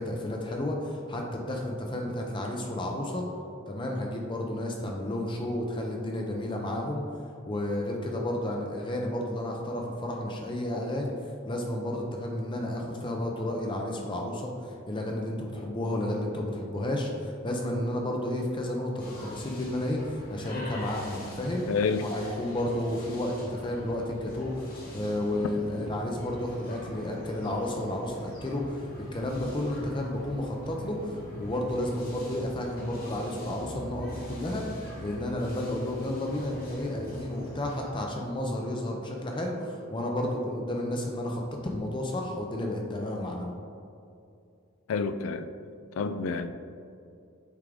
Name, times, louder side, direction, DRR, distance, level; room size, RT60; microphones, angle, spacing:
voice 1, 0.0-3.3 3.7-7.0 7.5-11.1 11.4-21.7 22.0-43.5, left 1 dB, 20° left, 1 dB, 0.5 m, -32 dB
sound 1, 19.0-37.9, equal, 45° left, 1.3 m, -43 dB
voice 2, 21.7-22.1 44.9-45.5 46.0-46.5, left 5 dB, 75° left, 10 dB, 0.4 m, -28 dB
8.2 x 3.6 x 3.5 m, 2.4 s
head